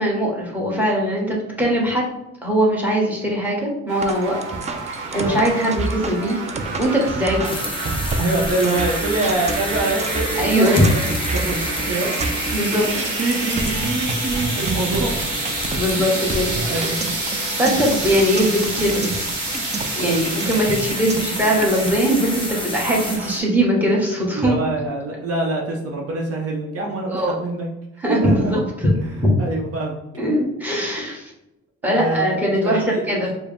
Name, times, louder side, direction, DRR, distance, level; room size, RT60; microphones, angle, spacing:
voice 1, 0.0-2.1 2.4-4.4 5.1-6.4 6.8-7.5 10.4-10.8 12.5-12.9 15.7-17.0 17.6-19.1 19.9-24.5 27.1-27.3 28.0-28.9 29.2-29.3 30.2-31.3 31.8-33.3, equal, 5° right, -3 dB, 1.3 m, -20 dB
sound 1, 3.9-23.4, right 3 dB, 85° right, 0.9 m, -29 dB
sound 2, 4.0-22.0, right 3 dB, 25° right, 0.4 m, -29 dB
sound 3, 7.4-23.2, left 3 dB, 15° left, 0.8 m, -30 dB
voice 2, 8.2-12.1 12.8-15.3 16.0-16.2 16.6-17.3 20.0-20.3 24.3-27.7 28.1-28.5 29.0-30.0 31.8-33.1, right 2 dB, 50° right, -1 dB, 0.7 m, -25 dB
4.6 x 2.1 x 3.4 m, 0.93 s
cardioid pair, 90°, 30 cm